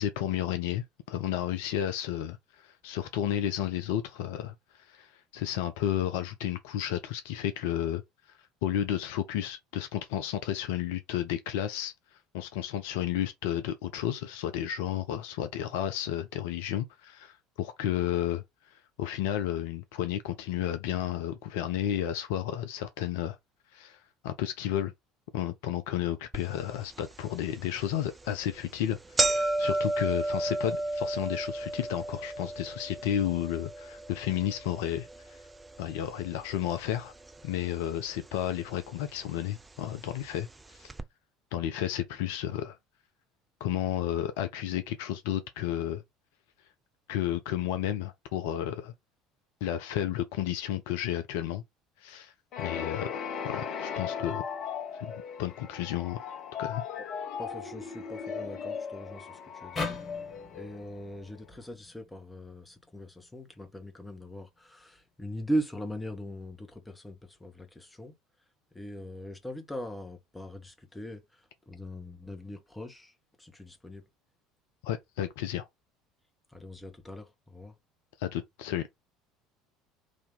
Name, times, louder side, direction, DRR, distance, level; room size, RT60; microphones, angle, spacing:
voice 1, 0.0-8.0 8.6-11.9 12.3-23.4 23.7-24.0 24.2-24.9 25.3-35.1 35.8-37.1 37.4-40.5 40.8-40.9 41.5-42.8 43.6-46.0 47.1-48.9 49.6-51.6 52.0-52.3 52.6-54.4 54.9-55.1 55.4-56.2 56.6-56.8 74.8-75.7 78.2-78.9, left 11 dB, 65° left, 0.5 m, -32 dB
sound 1, 26.3-26.4 27.0-27.1 27.9-28.1 28.4-28.5 28.8-37.0 37.3-38.0 38.8-38.9 39.9-40.0 40.2-40.3 40.9-41.0, right 2 dB, 15° right, 0.5 m, -32 dB
sound 2, 52.5-61.3, left 7 dB, 45° left, 1.0 m, -37 dB
voice 2, 57.4-60.0 60.5-68.1 68.7-73.1 73.4-74.0 76.5-77.7, equal, 10° left, 1.2 m, -40 dB
sound 3, 59.8-63.0, left 3 dB, 30° left, 2.0 m, -40 dB
3.8 x 2.8 x 3.6 m
figure-of-eight pair, 65°, 0 cm